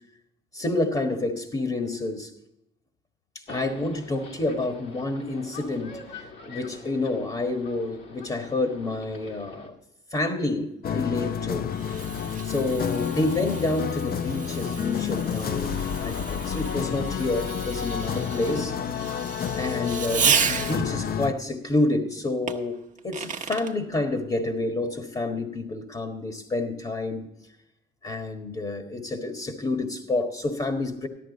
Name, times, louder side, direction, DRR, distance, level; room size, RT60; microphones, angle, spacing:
voice 1, 0.5-2.3 3.5-6.0 6.5-9.7 10.1-11.7 12.4-18.8 19.5-22.8 23.0-27.3 28.0-31.1, left 2 dB, 30° left, 4 dB, 1.5 m, -28 dB
sound 1, 3.5-9.7, left 3 dB, 70° left, 2.2 m, -45 dB
sound 2, 10.8-21.3, left 8 dB, 50° left, 0.6 m, -30 dB
Fireworks, 11.1-21.0 22.5-23.7, right 6 dB, 40° right, 1.0 m, -32 dB
13.5 x 11.5 x 4.0 m, 0.84 s
cardioid pair, 90°, 20 cm